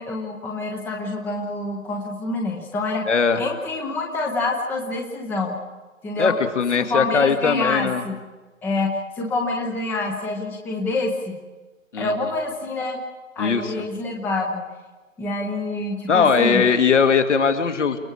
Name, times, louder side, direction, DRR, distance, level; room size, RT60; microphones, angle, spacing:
voice 1, 0.0-3.1 3.4-5.6 6.0-6.4 6.7-8.2 8.6-11.4 12.0-13.0 13.4-14.6 15.2-16.6, left 2 dB, 5° left, 1 dB, 1.0 m, -27 dB
voice 2, 3.1-3.4 6.2-8.0 11.9-12.1 13.4-13.7 16.1-18.0, left 5 dB, 60° left, 5 dB, 2.3 m, -19 dB
29.5 x 18.5 x 4.9 m, 1.2 s
figure-of-eight pair, 140°, 40 cm